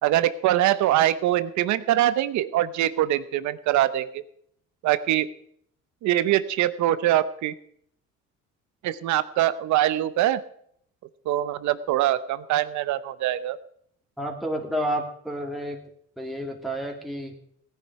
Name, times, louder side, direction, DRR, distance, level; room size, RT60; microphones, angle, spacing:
voice 1, 0.0-4.2 4.8-5.3 6.0-7.5 8.8-10.4 11.3-13.6, right 13 dB, 75° right, 15 dB, 0.9 m, -23 dB
voice 2, 14.2-15.8 16.2-17.4, equal, ahead, 1 dB, 2.3 m, -30 dB
17.0 x 10.5 x 4.7 m, 0.66 s
cardioid pair, 100°, 29 cm